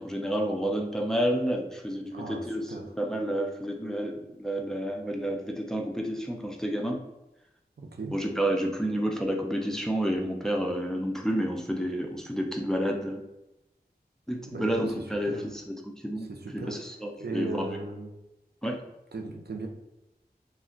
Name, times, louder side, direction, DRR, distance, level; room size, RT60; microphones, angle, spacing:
voice 1, 0.0-2.6 3.0-7.0 8.1-13.2 14.3-15.3 16.0-16.3 16.5-17.8 18.6-18.8, equal, 5° left, 1 dB, 0.4 m, -30 dB
voice 2, 2.1-2.9 7.8-8.2 14.5-15.4 16.2-16.8 17.2-18.1 19.1-19.7, right 3 dB, 75° right, 2 dB, 0.4 m, -37 dB
2.4 x 2.1 x 3.7 m, 0.93 s
wide cardioid pair, 50°, 17 cm